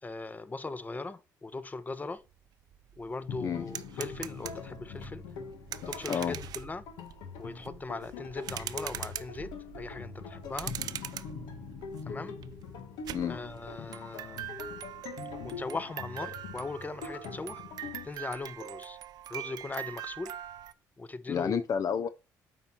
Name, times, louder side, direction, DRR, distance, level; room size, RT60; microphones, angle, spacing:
voice 1, 0.0-2.2 3.0-5.2 5.9-6.8 7.4-9.5 9.7-10.7 12.1-12.4 13.3-14.5 15.4-17.6 18.0-19.0 19.3-20.3 21.0-21.7, left 3 dB, 25° left, 0.8 m, -39 dB
sound 1, 2.3-2.4 2.7-20.7, right 12 dB, 65° right, 0.5 m, -43 dB
sound 2, 3.3-18.1, left 5 dB, 85° left, 1.3 m, -43 dB
voice 2, 21.3-22.1, left 7 dB, 50° left, 0.5 m, -30 dB
8.0 x 4.5 x 4.4 m
supercardioid pair, 70°, 7 cm